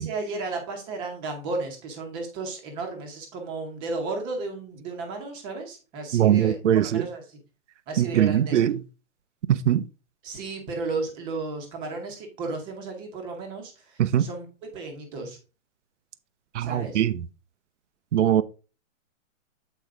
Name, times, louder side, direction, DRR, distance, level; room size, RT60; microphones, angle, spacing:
voice 1, 0.0-6.6 6.8-7.4 7.9-8.6 10.2-14.5 14.7-15.4 16.6-17.0, right 3 dB, 10° right, 0.9 m, -34 dB
voice 2, 6.1-7.0 8.0-8.8 9.5-9.8 14.0-14.3 16.5-17.2 18.1-18.4, right 11 dB, 60° right, 0.6 m, -21 dB
8.4 x 4.5 x 3.7 m
hypercardioid pair, 170°, 40 cm